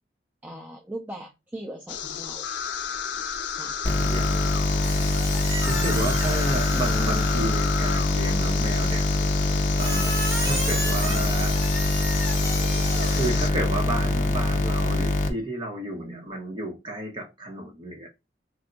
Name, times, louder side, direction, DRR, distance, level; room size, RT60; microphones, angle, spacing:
voice 1, 0.4-2.5 3.6-3.8 16.0-16.3, right 1 dB, 10° right, 0.4 m, -39 dB
sound 1, 1.9-13.5, left 8 dB, 85° left, 0.4 m, -33 dB
voice 2, 3.7-5.0 5.7-9.1 9.8-11.6 13.1-18.1, right 1 dB, 25° right, 0.9 m, -32 dB
sound 2, 3.8-15.3, left 2 dB, 45° left, 0.6 m, -24 dB
Squeak, 4.8-7.6 9.8-13.3, right 1 dB, 55° right, 1.5 m, -33 dB
3.5 x 2.3 x 3.8 m
head